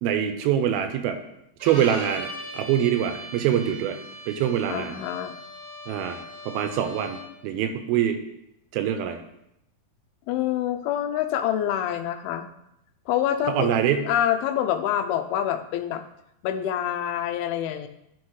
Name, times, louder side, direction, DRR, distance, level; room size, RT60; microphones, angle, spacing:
voice 1, 0.0-1.2 1.6-4.0 4.3-5.0 5.9-8.2 8.7-9.2 13.5-14.0, right 9 dB, 80° right, 7 dB, 2.6 m, -24 dB
Bowed string instrument, 1.6-7.4, right 1 dB, 50° right, 1.3 m, -39 dB
voice 2, 4.7-5.3 10.3-12.5 13.1-13.7 14.1-16.0 16.4-17.9, left 10 dB, 85° left, 9 dB, 2.5 m, -26 dB
11.5 x 4.4 x 4.8 m, 0.81 s
omnidirectional pair, 4.4 m